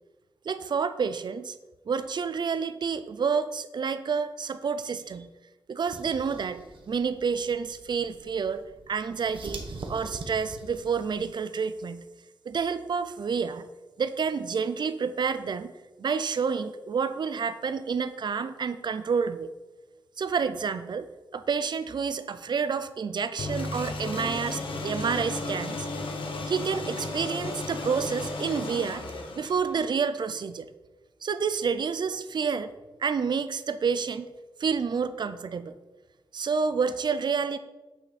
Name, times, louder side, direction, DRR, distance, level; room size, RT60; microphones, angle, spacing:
voice 1, 0.5-1.6 1.9-5.3 5.7-9.6 9.9-12.0 12.5-13.7 14.0-15.7 16.0-19.5 20.2-26.1 26.5-29.0 29.3-30.7 31.2-32.7 33.0-34.3 34.6-35.7 36.3-37.6, right 6 dB, 60° right, 12 dB, 0.5 m, -29 dB
sound 1, 5.9-11.2, right 3 dB, 80° right, 1.1 m, -43 dB
sound 2, 23.4-29.9, left 2 dB, 85° left, 1.1 m, -34 dB
8.7 x 5.8 x 4.2 m, 1.1 s
wide cardioid pair, 145°, 9 cm